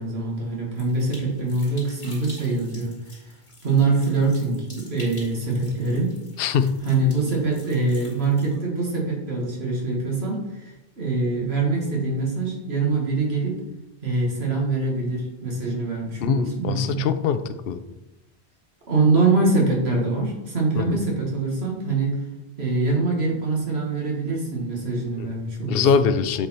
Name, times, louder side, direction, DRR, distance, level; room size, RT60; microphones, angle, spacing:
voice 1, 0.0-3.3 3.6-6.1 6.8-13.6 14.0-17.1 18.9-22.2 22.6-25.9, right 3 dB, 70° right, -2 dB, 2.1 m, -24 dB
sound 1, 0.8-8.6, left 1 dB, 80° left, 2.6 m, -47 dB
voice 2, 6.4-6.8 16.2-17.4 17.7-17.8 20.8-20.9 25.2-25.3 25.7-26.5, left 6 dB, 65° left, 11 dB, 0.7 m, -22 dB
7.8 x 4.8 x 4.3 m, 0.98 s
omnidirectional pair, 1.1 m